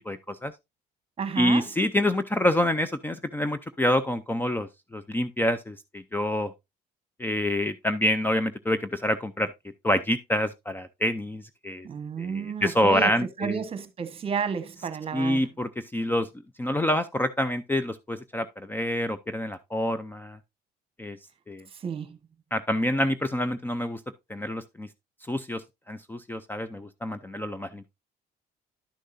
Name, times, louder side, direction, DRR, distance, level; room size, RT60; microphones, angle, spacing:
voice 1, 0.1-0.5 1.4-6.5 7.2-9.5 9.8-11.9 12.2-13.5 15.1-16.3 16.6-20.4 21.0-21.2 21.5-21.6 22.5-24.0 24.3-24.9 25.3-27.8, left 1 dB, 10° left, 0.5 m, -27 dB
voice 2, 1.2-1.7 11.8-15.5 21.7-22.2, right 6 dB, 35° right, 1.2 m, -31 dB
11.5 x 6.5 x 2.6 m
cardioid pair, 110°, 17 cm